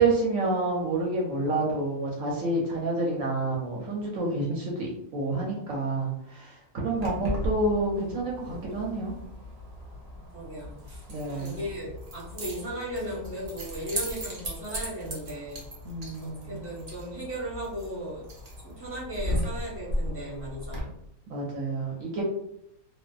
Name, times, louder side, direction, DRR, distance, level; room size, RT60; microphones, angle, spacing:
voice 1, 0.0-9.1 11.1-11.6 15.8-16.6 21.3-22.2, right 2 dB, 70° right, -3 dB, 0.9 m, -28 dB
Keys jangling, 7.0-20.8, equal, 45° right, 0.5 m, -37 dB
voice 2, 10.3-10.8 11.3-15.7 16.2-18.2 18.6-20.9, right 1 dB, 10° right, -8 dB, 1.0 m, -36 dB
2.4 x 2.4 x 2.3 m, 0.79 s
omnidirectional pair, 1.5 m